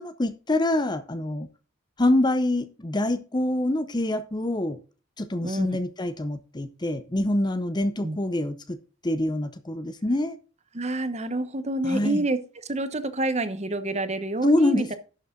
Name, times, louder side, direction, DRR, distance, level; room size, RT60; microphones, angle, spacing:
voice 1, 0.0-1.5 2.0-4.8 5.2-8.8 9.0-10.4 11.8-12.2 14.4-15.0, left 1 dB, 20° left, 0.7 m, -25 dB
voice 2, 10.7-12.4 12.7-14.9, right 2 dB, 30° right, 1.0 m, -27 dB
11.5 x 7.0 x 3.8 m
head